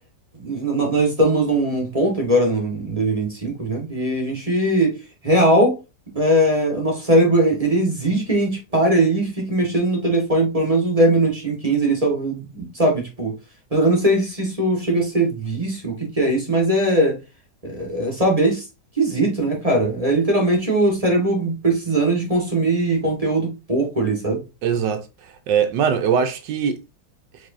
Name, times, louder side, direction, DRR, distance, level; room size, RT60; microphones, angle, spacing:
voice 1, 0.3-5.0 5.2-5.8 6.1-13.3 13.7-17.1 17.6-18.7 19.0-24.4, right 1 dB, 20° right, 1.4 m, -20 dB
voice 2, 24.6-26.8, right 7 dB, 85° right, 1.4 m, -22 dB
4.8 x 4.0 x 2.6 m
omnidirectional pair, 1.9 m